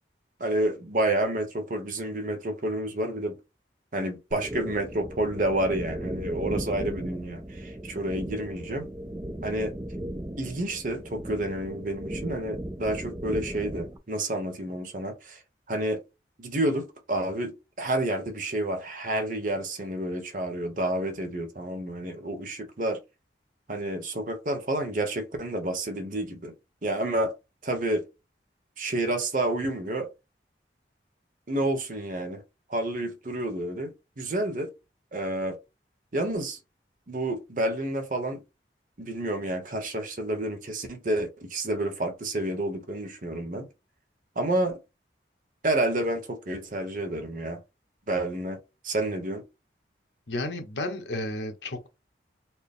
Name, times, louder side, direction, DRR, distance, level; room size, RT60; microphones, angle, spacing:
voice 1, 0.4-3.4 3.9-8.9 9.4-9.8 10.4-15.4 15.7-16.0 16.4-23.0 23.7-26.5 26.8-27.3 27.6-28.1 28.8-30.1 31.5-32.4 32.7-34.7 35.1-35.6 36.1-36.6 37.1-38.4 39.0-43.7 44.4-44.8 45.6-47.6 48.1-49.4, right 1 dB, 50° right, 0.8 m, -29 dB
sound 1, 4.3-14.0, right 1 dB, 20° right, 0.4 m, -36 dB
voice 2, 50.3-51.9, left 1 dB, 80° left, 1.0 m, -32 dB
4.3 x 2.0 x 3.5 m
head